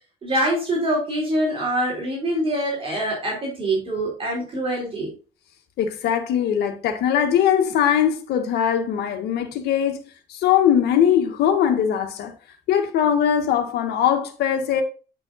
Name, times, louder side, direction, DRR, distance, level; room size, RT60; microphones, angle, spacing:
voice 1, 0.2-5.1, right 1 dB, 35° right, 4.4 m, -24 dB
voice 2, 5.8-10.0 10.3-12.3 12.7-14.8, left 9 dB, 75° left, 1.9 m, -21 dB
10.5 x 5.9 x 2.4 m
cardioid pair, 110°, 17 cm